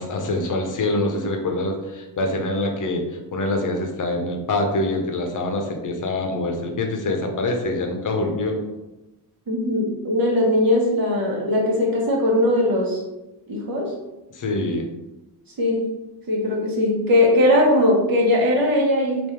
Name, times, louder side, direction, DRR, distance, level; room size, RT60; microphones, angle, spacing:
voice 1, 0.0-8.6 14.3-14.9, left 2 dB, 50° left, 3 dB, 0.8 m, -25 dB
voice 2, 9.5-13.0 13.5-13.9 15.6-15.9 16.3-19.3, left 1 dB, 55° right, -2 dB, 1.2 m, -19 dB
3.5 x 2.6 x 4.4 m, 1.0 s
wide cardioid pair, 155°, 41 cm